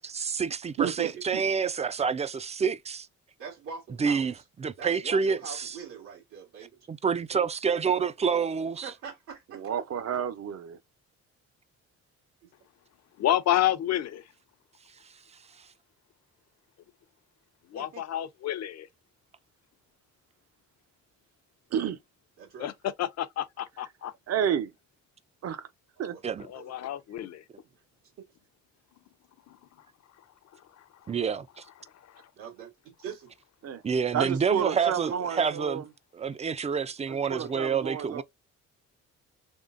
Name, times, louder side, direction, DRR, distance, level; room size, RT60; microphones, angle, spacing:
voice 1, 0.0-3.1 4.0-4.3 4.6-5.8 6.9-8.9 15.0-15.1 15.6-15.7 26.2-26.5 31.1-31.6 33.8-35.8 36.1-38.2, right 6 dB, 25° right, 0.3 m, -28 dB
voice 2, 0.8-1.1 3.4-4.3 4.8-6.8 8.8-9.7 12.4-12.5 17.7-18.0 22.4-22.7 26.0-26.7 32.4-33.3 34.1-35.6, right 6 dB, 90° right, 1.8 m, -41 dB
voice 3, 9.5-10.8 21.7-22.0 24.3-24.7 25.4-25.7 26.0-26.2 33.6-33.8 34.1-35.8 37.1-38.2, right 8 dB, 55° right, 0.6 m, -30 dB
voice 4, 13.2-14.2 17.7-18.9 22.6-22.7 23.0-24.1 26.5-27.4, left 12 dB, 60° left, 0.6 m, -29 dB
3.6 x 3.2 x 2.5 m
cardioid pair, 90°, 30 cm